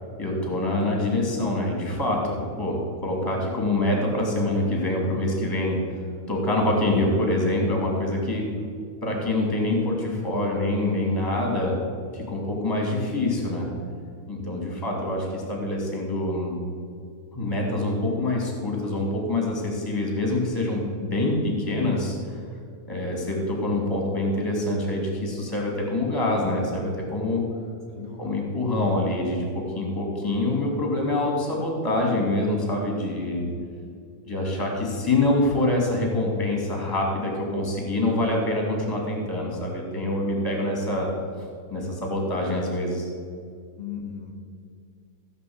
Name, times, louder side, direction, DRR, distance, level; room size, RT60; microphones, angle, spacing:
voice 1, 0.2-6.0 6.3-8.5 9.0-11.8 12.1-13.7 14.3-16.6 17.3-22.4 22.9-27.4 28.2-33.5 34.2-41.1 41.7-43.1, left 1 dB, 5° left, 0 dB, 2.2 m, -25 dB
voice 2, 27.9-28.4 33.3-33.6 43.8-44.3, left 8 dB, 60° left, -1 dB, 1.9 m, -37 dB
16.0 x 5.6 x 8.0 m, 2.3 s
omnidirectional pair, 3.5 m